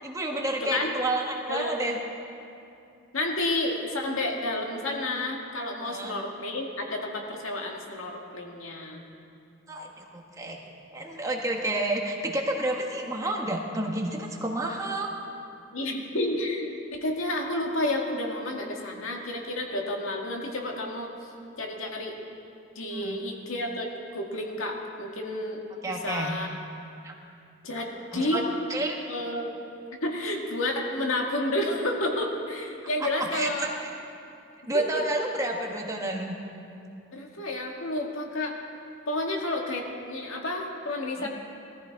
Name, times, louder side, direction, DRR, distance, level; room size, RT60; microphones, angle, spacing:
voice 1, 0.0-2.0 5.8-6.1 9.7-10.6 10.9-15.1 22.9-23.2 25.8-26.4 27.0-27.1 28.1-28.4 28.7-29.0 33.0-33.9 34.7-36.3 41.2-41.3, right 1 dB, 15° right, 0 dB, 1.3 m, -30 dB
voice 2, 1.5-1.8 3.1-9.0 15.7-21.1 21.6-22.1 22.8-25.6 25.9-26.6 27.6-28.4 29.1-29.5 30.0-33.6 34.7-35.2 37.1-38.5 39.1-41.3, left 1 dB, 85° left, 1 dB, 2.0 m, -30 dB
19.5 x 14.5 x 4.7 m, 2.6 s
head